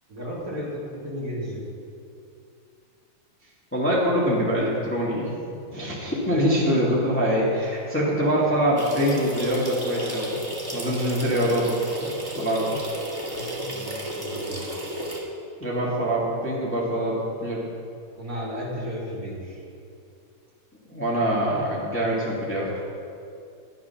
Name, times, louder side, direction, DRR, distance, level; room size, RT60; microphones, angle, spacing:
voice 1, 0.1-1.7 6.3-6.5 13.3-14.7 18.2-19.6, equal, 40° right, -6 dB, 2.9 m, -34 dB
voice 2, 3.7-5.3 5.7-10.4 10.7-12.8 15.6-17.6 20.9-22.7, equal, 5° left, -6 dB, 1.8 m, -24 dB
sound 1, 8.8-15.2, right 1 dB, 10° right, 1.5 m, -33 dB
12.0 x 9.1 x 5.8 m, 2.5 s
omnidirectional pair, 2.4 m